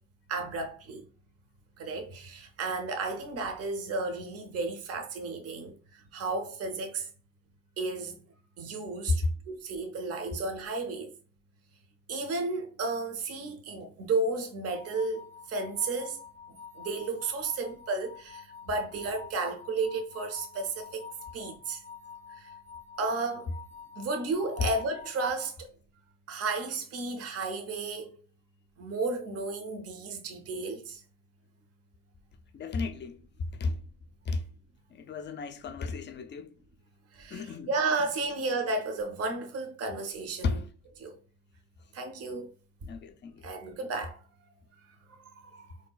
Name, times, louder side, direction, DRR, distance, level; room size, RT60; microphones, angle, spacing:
voice 1, 0.3-1.0 1.8-7.1 7.8-8.2 8.6-11.1 12.1-16.2 16.7-21.1 21.3-21.8 22.3-22.5 23.0-23.5 24.0-25.7 26.3-28.2 28.8-31.0 37.1-40.6 41.0-41.2 41.9-42.5 43.4-44.2 45.1-45.7, right 3 dB, 50° right, 0.7 m, -33 dB
sound 1, 14.6-25.5, left 6 dB, 80° right, 1.3 m, -48 dB
voice 2, 32.5-33.2 33.5-33.8 34.3-34.4 34.9-36.5 37.3-37.7 38.0-38.1 40.4-40.7 42.8-43.5, left 3 dB, 35° left, 0.4 m, -32 dB
3.6 x 2.7 x 2.2 m
cardioid pair, 90°, 30 cm